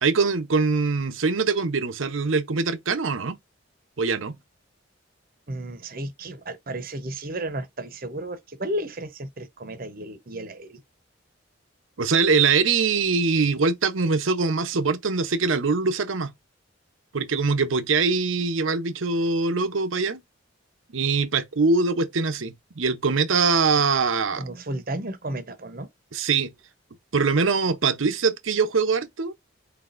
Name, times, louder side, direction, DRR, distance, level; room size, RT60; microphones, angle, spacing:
voice 1, 0.0-3.4 4.0-4.4 12.0-16.3 17.1-20.2 20.9-24.4 26.1-26.5 27.1-29.3, right 4 dB, 80° right, 0.8 m, -23 dB
voice 2, 5.5-10.8 24.3-25.9, right 1 dB, 45° right, 0.9 m, -33 dB
4.1 x 3.5 x 2.5 m
head